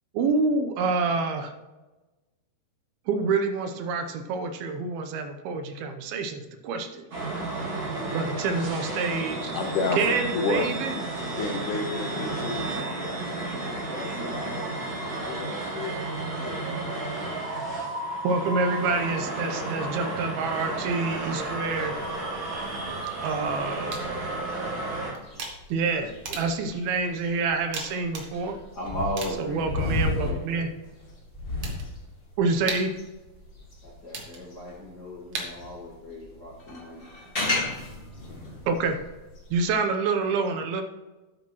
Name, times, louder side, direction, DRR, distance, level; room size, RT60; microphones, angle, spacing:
voice 1, 0.1-1.5 3.1-7.0 8.1-9.5 10.0-10.9 13.4-13.5 18.2-21.9 23.2-24.1 25.7-28.6 29.4-30.7 32.4-33.0 38.7-39.0 39.5-40.8, right 4 dB, 80° right, 7 dB, 2.6 m, -27 dB
sound 1, 7.1-25.1, right 2 dB, 35° right, 3.1 m, -32 dB
voice 2, 9.5-10.1 10.3-10.7 11.4-14.6 15.3-16.0 16.3-17.1, left 4 dB, 75° left, 2 dB, 1.9 m, -32 dB
sound 2, 21.2-34.8 35.3-39.7, left 2 dB, 30° left, 1.1 m, -35 dB
sound 3, 23.9-36.0, right 3 dB, 50° right, 1.8 m, -42 dB
voice 3, 28.7-29.7 30.0-30.4 33.8-37.0, equal, 50° left, -5 dB, 1.2 m, -36 dB
11.5 x 8.6 x 3.0 m, 1.1 s
omnidirectional pair, 4.6 m